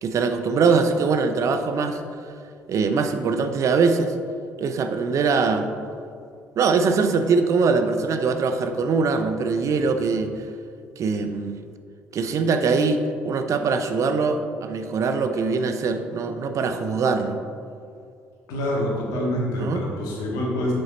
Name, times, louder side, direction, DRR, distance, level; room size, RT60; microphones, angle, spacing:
voice 1, 0.0-2.0 2.7-4.1 4.6-5.7 6.6-10.4 11.0-11.6 12.1-17.4 19.6-19.8, right 4 dB, 50° right, 8 dB, 0.6 m, -22 dB
voice 2, 18.5-20.7, equal, 65° left, -2 dB, 1.8 m, -26 dB
7.2 x 6.8 x 4.2 m, 2.3 s
hypercardioid pair, 55°, 7 cm